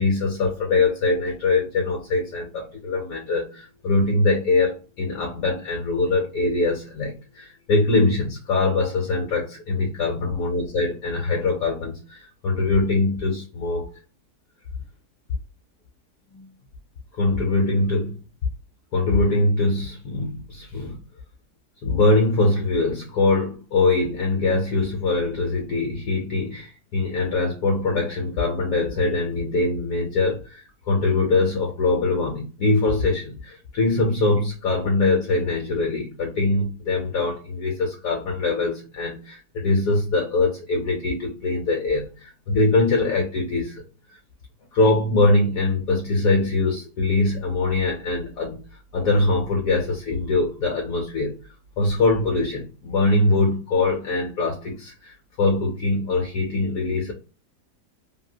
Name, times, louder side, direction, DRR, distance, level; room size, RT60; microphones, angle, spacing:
voice 1, 0.0-13.9 16.3-16.5 17.1-18.2 18.9-21.0 21.8-43.8 44.7-48.6 48.9-51.4 51.8-57.1, left 2 dB, 70° left, 1.0 m, -23 dB
2.8 x 2.5 x 2.6 m
omnidirectional pair, 1.8 m